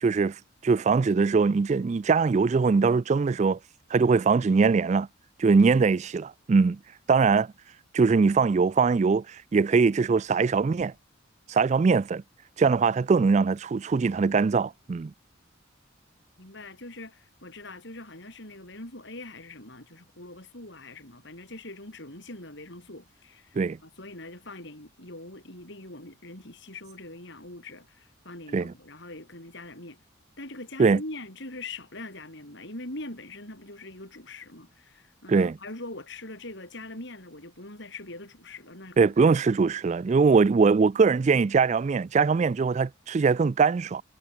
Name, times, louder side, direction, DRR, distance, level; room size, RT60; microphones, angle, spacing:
voice 1, 0.0-3.6 3.9-5.1 5.4-6.8 7.1-7.5 7.9-10.9 11.5-12.2 12.6-15.1 23.6-23.8 28.5-28.7 30.8-31.0 35.3-35.6 39.0-44.0, right 4 dB, 35° right, 0.3 m, -22 dB
voice 2, 16.4-30.0 30.4-39.1, left 2 dB, 55° left, 7.0 m, -42 dB
head